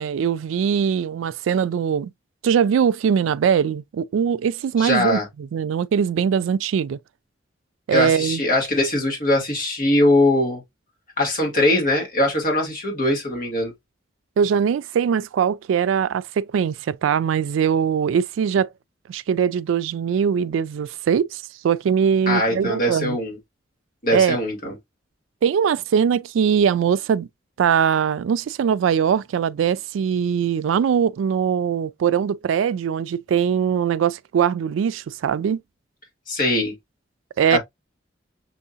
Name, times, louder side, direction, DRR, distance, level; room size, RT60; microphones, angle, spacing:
voice 1, 0.0-2.1 2.4-7.0 7.9-8.4 14.4-18.7 19.1-23.2 24.1-24.4 25.4-27.3 27.6-35.6 37.4-37.6, right 7 dB, 85° right, 0.3 m, -21 dB
voice 2, 4.8-5.2 7.9-10.6 11.2-13.7 22.3-23.4 24.0-24.7 36.3-36.7 37.5-37.6, left 1 dB, 45° left, 2.0 m, -21 dB
6.1 x 2.7 x 2.4 m
head